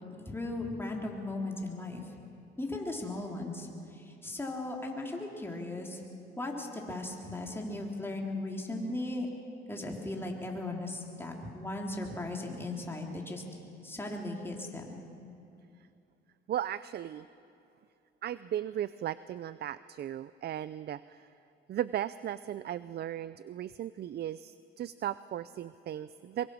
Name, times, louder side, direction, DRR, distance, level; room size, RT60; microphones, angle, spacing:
voice 1, 0.1-2.0 2.6-3.7 3.9-6.0 6.4-9.3 9.7-13.4 13.8-15.0, left 2 dB, 10° left, 0 dB, 3.4 m, -37 dB
voice 2, 16.5-17.3 18.2-21.3 21.7-26.5, right 11 dB, 55° right, 16 dB, 0.5 m, -36 dB
23.5 x 22.5 x 6.3 m, 2.6 s
cardioid pair, 90°, 20 cm